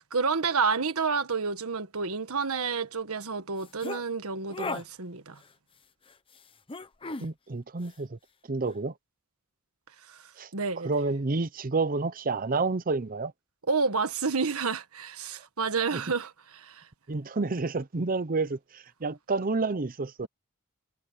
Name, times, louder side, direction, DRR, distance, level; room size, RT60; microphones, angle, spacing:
voice 1, 0.0-5.4 10.1-10.9 13.7-16.9, right 5 dB, 75° right, 1.5 m, -30 dB
sound 1, 3.6-4.0 4.5-4.8 6.7-7.3, left 3 dB, 25° left, 0.9 m, -35 dB
voice 2, 7.2-8.2 8.5-8.9 10.4-10.5 10.8-13.3 15.9-16.0 17.1-20.3, right 3 dB, 40° right, 0.7 m, -29 dB
head